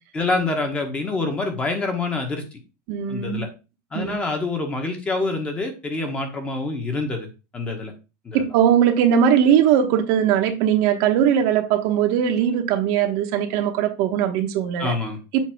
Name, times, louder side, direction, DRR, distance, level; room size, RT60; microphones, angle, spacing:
voice 1, 0.1-2.4 3.1-3.5 3.9-7.3 7.5-7.9 8.2-8.4 14.8-15.2, left 3 dB, 15° left, 1.2 m, -26 dB
voice 2, 2.9-3.4 3.9-4.1 8.3-14.9 15.3-15.4, right 9 dB, 50° right, 1.0 m, -20 dB
7.4 x 2.8 x 5.8 m
cardioid pair, 180°, 8 cm